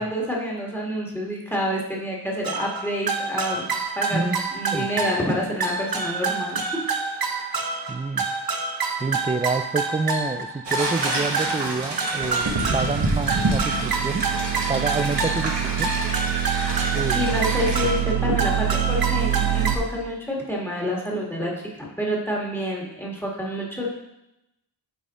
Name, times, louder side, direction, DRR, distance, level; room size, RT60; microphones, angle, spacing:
voice 1, 0.0-3.6 4.0-6.8 7.2-7.4 17.1-23.9, equal, 5° left, -3 dB, 1.8 m, -28 dB
sound 1, 2.4-19.8, right 6 dB, 55° right, 0.8 m, -26 dB
voice 2, 4.1-5.3 7.9-8.2 9.0-14.2 14.7-15.9 16.9-17.4 18.2-18.3, right 3 dB, 15° right, 11 dB, 0.3 m, -28 dB
sound 2, 10.6-17.9, right 2 dB, 70° right, 1.4 m, -28 dB
9.0 x 4.1 x 3.7 m, 0.89 s
wide cardioid pair, 50°, 43 cm